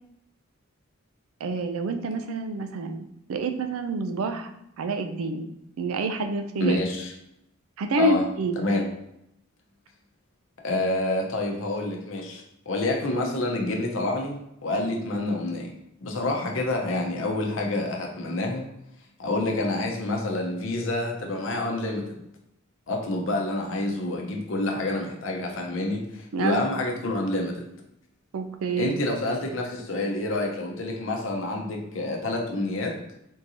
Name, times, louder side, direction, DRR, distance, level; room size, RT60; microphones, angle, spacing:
voice 1, 1.4-4.5 4.8-5.5 5.8-6.8 7.8-8.6 26.3-26.7 28.3-28.9, right 3 dB, 85° right, 7 dB, 0.4 m, -28 dB
voice 2, 6.6-7.1 8.0-8.2 8.6-8.8 10.6-15.7 16.0-18.7 19.2-22.2 22.9-27.6 28.8-32.9, left 2 dB, 65° left, 1 dB, 0.7 m, -28 dB
3.6 x 2.6 x 2.8 m, 0.80 s
head